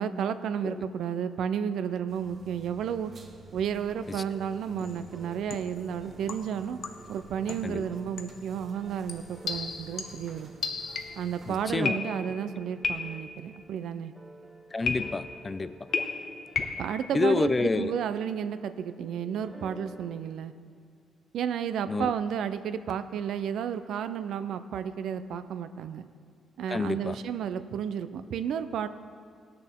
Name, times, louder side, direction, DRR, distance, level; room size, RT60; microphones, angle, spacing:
voice 1, 0.0-3.1 3.5-6.8 7.1-10.5 11.2-14.1 16.8-20.5 21.3-26.1 26.6-28.9, right 8 dB, 75° right, 12 dB, 0.5 m, -32 dB
sound 1, 2.1-11.8, right 5 dB, 55° right, 1.2 m, -52 dB
sound 2, 4.3-20.2, right 1 dB, 15° right, 0.8 m, -51 dB
sound 3, 4.8-5.0 5.5-5.8 6.3-7.2 7.5-7.8 8.2-8.4 9.1-11.3 11.9-12.4 12.8-13.4 14.9-15.4 15.9-17.0, left 5 dB, 55° left, 0.7 m, -34 dB
voice 2, 11.5-12.0 14.7-15.7 17.1-17.9 21.9-22.1 26.7-27.2, left 3 dB, 25° left, 14 dB, 0.4 m, -28 dB
17.0 x 6.7 x 3.6 m, 2.3 s
cardioid pair, 90°, 0 cm